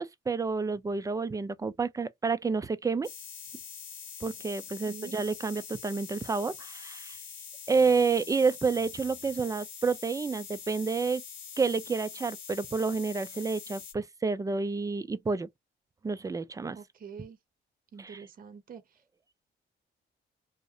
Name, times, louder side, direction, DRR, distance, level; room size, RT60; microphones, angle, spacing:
voice 1, 0.0-3.1 4.2-7.2 7.7-11.2 11.6-15.5 16.0-16.8 18.0-18.2, right 4 dB, 15° right, 0.3 m, -29 dB
sound 1, 3.0-13.9, left 7 dB, 65° left, 1.1 m, -44 dB
voice 2, 4.9-5.2 16.7-17.4 17.9-18.8, right 6 dB, 45° right, 0.7 m, -46 dB
2.7 x 2.1 x 2.3 m
cardioid pair, 90°, 20 cm